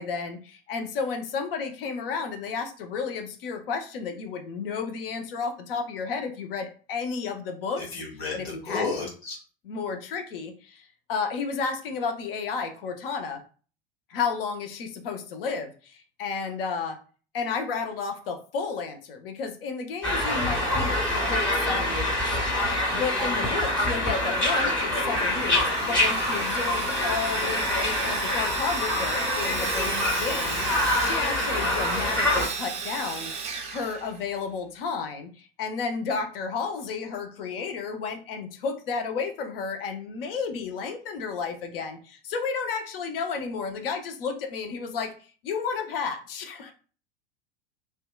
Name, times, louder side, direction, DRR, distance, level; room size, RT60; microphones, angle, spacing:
voice 1, 0.0-8.0 8.3-9.0 9.7-13.4 14.1-17.0 17.3-22.4 22.9-33.3 33.7-45.1 45.4-46.7, left 5 dB, 65° left, 6 dB, 0.6 m, -32 dB
voice 2, 7.9-9.3, left 3 dB, 80° left, -5 dB, 1.1 m, -32 dB
sound 1, 20.0-32.5, left 1 dB, 5° left, 1.3 m, -25 dB
Sawing, 25.1-34.6, right 5 dB, 20° right, 0.3 m, -35 dB
2.7 x 2.2 x 2.2 m, 0.38 s
figure-of-eight pair, 80°, 31 cm